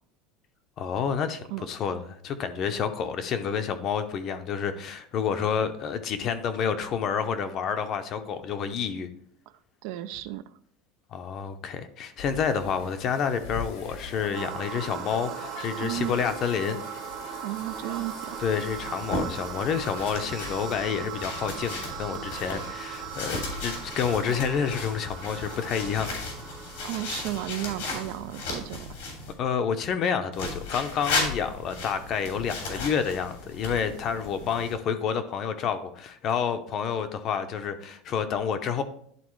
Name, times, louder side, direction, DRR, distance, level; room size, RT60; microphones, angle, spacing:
voice 1, 0.8-9.1 11.1-16.8 18.4-26.1 29.4-38.8, left 7 dB, 35° left, 0.7 m, -29 dB
voice 2, 9.8-10.4 15.8-16.1 17.4-18.4 26.8-28.9, right 15 dB, 60° right, 0.4 m, -33 dB
sound 1, 12.2-20.8, left 5 dB, 65° left, 1.2 m, -43 dB
sound 2, 14.3-28.4, right 9 dB, 35° right, 0.9 m, -39 dB
sound 3, 18.7-29.3 30.3-34.7, left 3 dB, 90° left, 2.8 m, -35 dB
11.0 x 3.9 x 3.2 m
cardioid pair, 160°, 0 cm